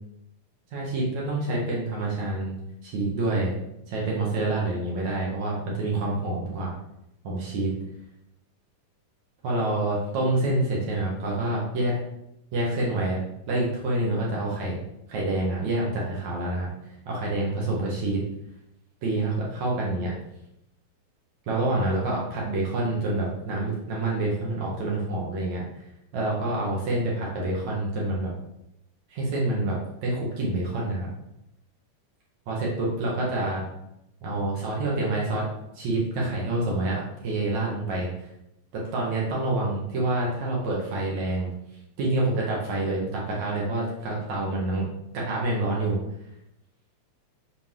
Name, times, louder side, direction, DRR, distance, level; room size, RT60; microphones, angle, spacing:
voice 1, 0.7-2.5 2.8-3.5 3.9-6.7 7.2-7.7 9.4-11.9 12.5-13.2 13.5-14.8 15.1-16.7 17.1-18.2 19.0-20.1 21.5-25.6 26.1-28.3 29.1-31.1 32.5-33.7 34.2-35.4 35.7-38.1 38.9-41.5 42.0-44.8 45.1-46.0, right 2 dB, 70° right, -4 dB, 3.0 m, -27 dB
11.0 x 4.6 x 3.8 m, 0.84 s
omnidirectional pair, 3.5 m